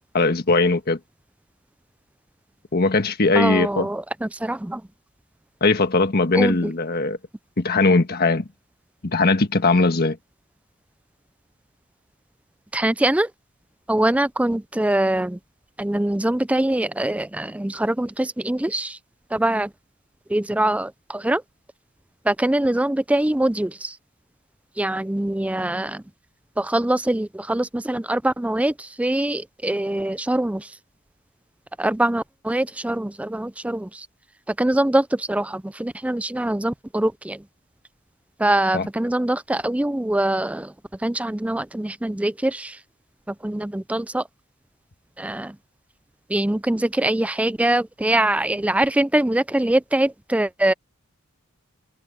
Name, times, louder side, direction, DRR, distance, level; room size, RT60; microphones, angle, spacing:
voice 1, 0.1-1.0 2.7-3.9 5.6-7.2 7.6-8.5 9.0-10.2 38.7-38.9, left 3 dB, 45° left, 1.4 m, -19 dB
voice 2, 3.4-4.8 6.4-6.7 12.7-13.3 13.9-15.4 15.8-19.0 19.3-19.7 20.3-21.4 22.3-23.9 24.8-26.0 26.6-30.6 31.8-33.9 34.6-37.4 38.4-40.7 41.0-42.7 43.4-44.2 45.2-45.5 46.3-50.7, right 1 dB, 5° right, 0.4 m, -23 dB
head